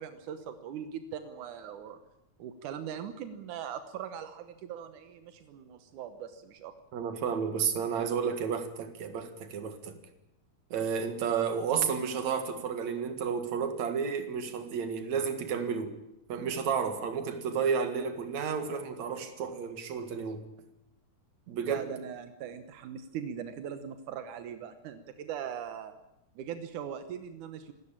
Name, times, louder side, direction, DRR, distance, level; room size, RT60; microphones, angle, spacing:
voice 1, 0.0-2.0 2.4-6.7 21.6-25.9 26.4-27.7, right 8 dB, 90° right, 9 dB, 2.6 m, -40 dB
voice 2, 6.9-10.0 10.7-16.0 16.3-20.4 21.5-21.9, right 6 dB, 70° right, 8 dB, 3.1 m, -31 dB
27.0 x 13.5 x 8.7 m, 0.86 s
omnidirectional pair, 3.4 m